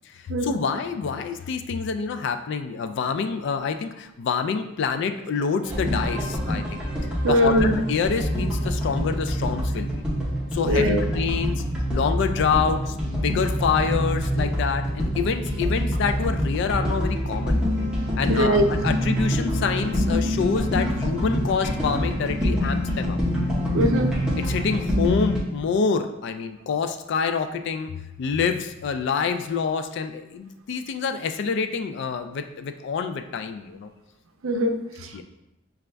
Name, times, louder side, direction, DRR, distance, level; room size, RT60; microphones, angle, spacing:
voice 1, 0.1-6.8 7.3-10.0 10.5-11.6 11.9-17.7 18.2-23.2 24.5-27.9 28.2-33.9 35.1-35.2, left 5 dB, 60° left, 8 dB, 0.3 m, -27 dB
sound 1, 5.6-25.4, equal, 5° right, 0.8 m, -25 dB
voice 2, 7.2-7.8 10.7-11.0 18.3-18.7 23.7-24.1 34.4-34.8 35.0-35.2, equal, 90° right, 6 dB, 0.5 m, -21 dB
5.0 x 2.3 x 3.3 m, 0.88 s
head